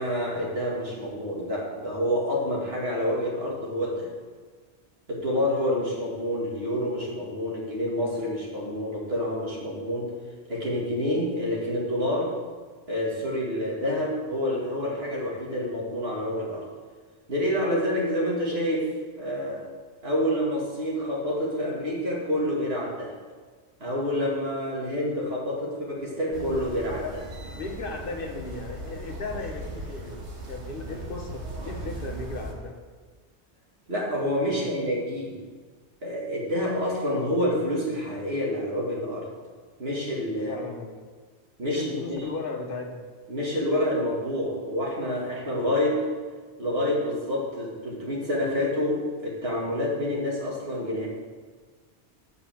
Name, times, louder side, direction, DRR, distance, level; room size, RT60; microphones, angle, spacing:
voice 1, 0.0-4.1 5.1-10.1 10.5-12.3 12.9-16.7 17.3-18.9 19.1-19.7 20.0-23.2 23.8-27.2 33.9-35.4 36.0-39.3 39.8-40.6 41.6-42.2 43.3-46.0 46.6-51.1, left 1 dB, 65° right, -4 dB, 2.4 m, -28 dB
sound 1, 26.3-32.5, right 1 dB, 85° right, 1.6 m, -38 dB
voice 2, 27.5-32.7 34.5-34.6 40.5-41.0 41.6-43.1, left 3 dB, 55° left, 2 dB, 1.3 m, -36 dB
8.0 x 5.3 x 7.6 m, 1.5 s
omnidirectional pair, 1.1 m